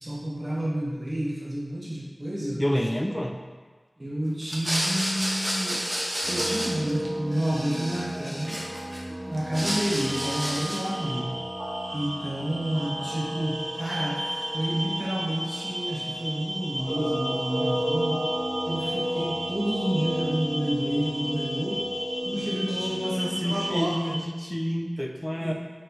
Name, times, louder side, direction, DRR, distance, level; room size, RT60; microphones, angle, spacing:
voice 1, 0.0-2.7 4.0-5.8 6.3-8.6 9.3-11.3 11.9-14.2 14.5-18.2 18.7-21.8 22.2-24.2 25.4-25.5, right 1 dB, 40° right, -7 dB, 1.2 m, -30 dB
voice 2, 2.6-3.4 22.7-25.5, equal, 15° left, 3 dB, 0.4 m, -29 dB
sound 1, 4.4-7.1 7.3-9.0 9.3-11.0, equal, 10° right, 0.7 m, -31 dB
sound 2, 6.2-23.8, equal, 55° right, 0.9 m, -33 dB
sound 3, 9.6-24.1, equal, 85° right, 0.8 m, -36 dB
4.2 x 3.1 x 2.9 m, 1.5 s
wide cardioid pair, 55°, 0 cm